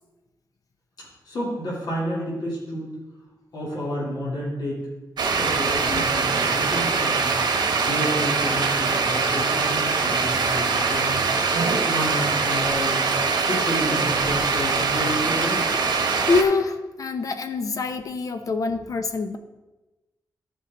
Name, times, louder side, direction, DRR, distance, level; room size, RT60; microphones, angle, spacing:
voice 1, 1.2-2.9 3.5-4.8 5.3-7.3 7.7-11.2 11.8-13.0 13.4-15.7, equal, 70° left, -6 dB, 3.4 m, -30 dB
sound 1, 5.2-16.4, right 4 dB, 80° right, 1.1 m, -23 dB
voice 2, 16.2-19.4, left 4 dB, 55° left, 8 dB, 0.8 m, -25 dB
14.0 x 5.5 x 3.9 m, 1.1 s
wide cardioid pair, 135°, 7 cm